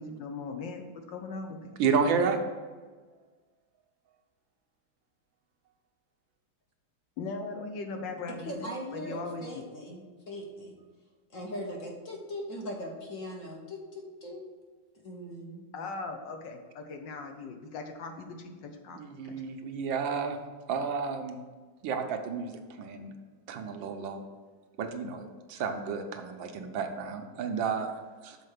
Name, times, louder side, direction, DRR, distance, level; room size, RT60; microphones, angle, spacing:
voice 1, 0.0-1.7 7.2-9.6 15.7-19.0, left 3 dB, 70° left, 4 dB, 1.4 m, -39 dB
voice 2, 1.8-2.4 18.9-20.4 20.7-21.4 21.8-23.1 23.5-24.2 24.8-28.4, right 5 dB, 75° right, 5 dB, 1.5 m, -31 dB
voice 3, 8.4-10.8 11.3-14.4 15.0-15.7, equal, 50° left, 0 dB, 1.2 m, -40 dB
6.6 x 4.3 x 6.5 m, 1.4 s
omnidirectional pair, 2.1 m